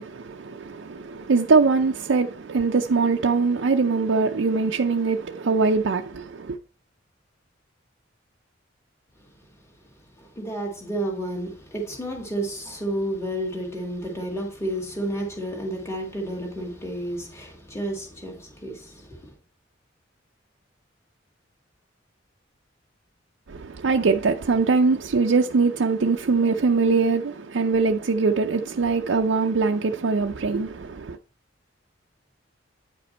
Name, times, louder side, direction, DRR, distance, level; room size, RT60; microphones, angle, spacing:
voice 1, 0.0-6.6 23.5-31.2, right 4 dB, 75° right, 0.5 m, -22 dB
voice 2, 10.2-19.3, right 1 dB, 15° left, 2.1 m, -31 dB
9.4 x 5.1 x 4.3 m
head